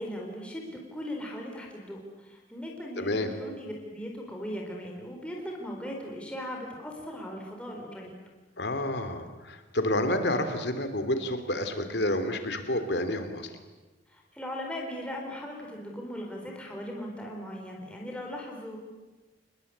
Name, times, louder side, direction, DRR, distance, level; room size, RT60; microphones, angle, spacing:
voice 1, 0.0-8.1 14.1-18.8, equal, 5° left, 0 dB, 4.3 m, -38 dB
voice 2, 3.0-3.3 8.6-13.5, left 1 dB, 60° left, 8 dB, 3.0 m, -29 dB
28.0 x 21.0 x 8.8 m, 1.2 s
head